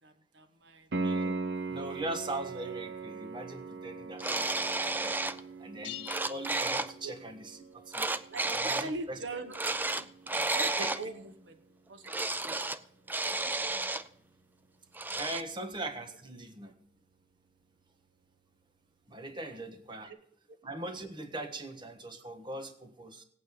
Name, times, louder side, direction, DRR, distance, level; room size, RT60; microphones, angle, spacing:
voice 1, 0.0-0.9 7.0-7.1 8.3-9.6 10.0-11.6 11.9-12.1 12.4-12.7 13.1-13.9, right 2 dB, 85° right, 7 dB, 1.1 m, -42 dB
Piano, 0.9-11.6 14.9-15.0, right 3 dB, 65° right, 0.8 m, -40 dB
voice 2, 1.0-1.4 1.7-8.1 8.5-9.2 10.8-11.0 15.2-16.8 19.1-20.1 20.6-23.2, right 2 dB, 25° right, 6 dB, 1.3 m, -41 dB
sound 1, 4.2-5.4 5.8-6.9 7.9-8.9 9.5-11.0 12.1-12.8 13.1-14.0 14.9-15.4, right 2 dB, 10° right, 0.4 m, -32 dB
sound 2, 5.8-7.4, left 16 dB, 75° left, 0.6 m, -46 dB
17.5 x 8.9 x 5.0 m, 0.64 s
head